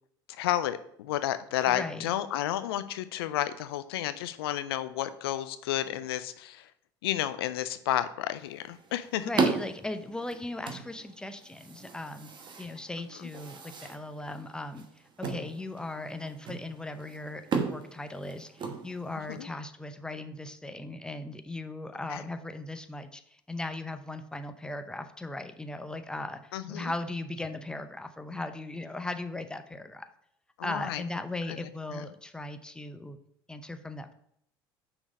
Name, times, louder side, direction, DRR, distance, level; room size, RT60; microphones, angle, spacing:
voice 1, 0.4-6.6 7.0-9.3 19.3-19.5 22.1-22.2 26.5-26.9 30.6-31.0 31.9-32.0, left 12 dB, 80° left, 12 dB, 0.4 m, -31 dB
voice 2, 1.7-2.1 9.2-12.3 12.6-14.9 15.2-30.1 30.6-33.2 33.5-34.1, left 2 dB, 5° left, 8 dB, 0.6 m, -38 dB
sound 1, 8.3-19.4, right 5 dB, 40° right, 1.1 m, -36 dB
5.9 x 4.0 x 5.0 m, 0.70 s
hypercardioid pair, 70°, 13 cm